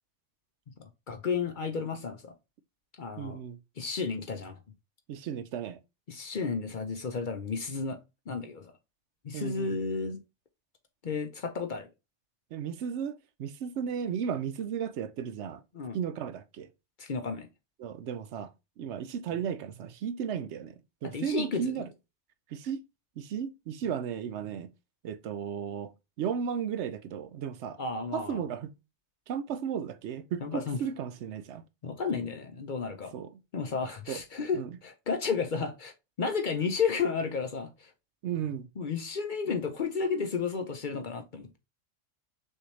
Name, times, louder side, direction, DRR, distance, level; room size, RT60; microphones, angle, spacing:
voice 1, 0.7-2.3 3.0-3.4 3.8-4.6 6.1-8.0 8.3-8.7 9.2-10.2 11.0-11.9 15.7-16.0 17.0-17.5 21.0-21.7 27.8-28.4 30.4-30.8 31.8-33.1 33.5-35.9 36.2-37.9 38.8-41.6, left 5 dB, 50° left, 0.7 m, -32 dB
voice 2, 3.2-3.6 5.1-5.8 9.3-9.8 12.5-15.6 15.9-16.7 17.8-20.7 21.0-21.9 22.5-22.8 23.2-24.7 25.0-25.9 26.2-27.8 28.1-28.7 29.3-31.6 33.1-33.3 34.1-34.2 34.5-34.7 38.2-38.7, right 8 dB, 75° right, 0.8 m, -34 dB
6.4 x 2.7 x 3.1 m
omnidirectional pair, 1.2 m